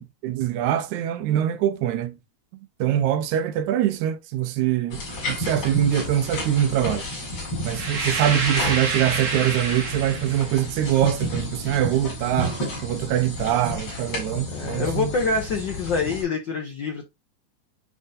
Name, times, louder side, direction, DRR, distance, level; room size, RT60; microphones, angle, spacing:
voice 1, 0.0-2.2 2.8-7.1 7.6-15.1, right 11 dB, 85° right, 2.2 m, -24 dB
sound 1, 4.9-16.2, left 1 dB, 50° left, 5.7 m, -32 dB
sound 2, 7.7-10.5, right 4 dB, 70° right, 0.7 m, -28 dB
voice 2, 14.5-17.1, left 4 dB, 75° left, 1.0 m, -26 dB
10.5 x 3.6 x 2.6 m
omnidirectional pair, 3.3 m